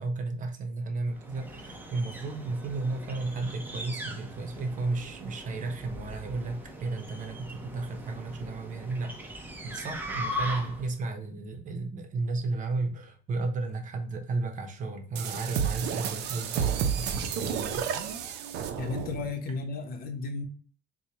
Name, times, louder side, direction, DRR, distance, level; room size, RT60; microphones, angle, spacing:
voice 1, 0.0-18.5, right 3 dB, 50° right, 5 dB, 0.8 m, -34 dB
sound 1, 1.1-11.0, equal, 10° right, 0.7 m, -40 dB
sound 2, 15.2-19.3, right 8 dB, 85° right, 0.5 m, -31 dB
voice 2, 18.8-20.5, left 3 dB, 60° left, 5 dB, 0.8 m, -34 dB
4.3 x 2.3 x 2.8 m, 0.41 s
cardioid pair, 110°, 17 cm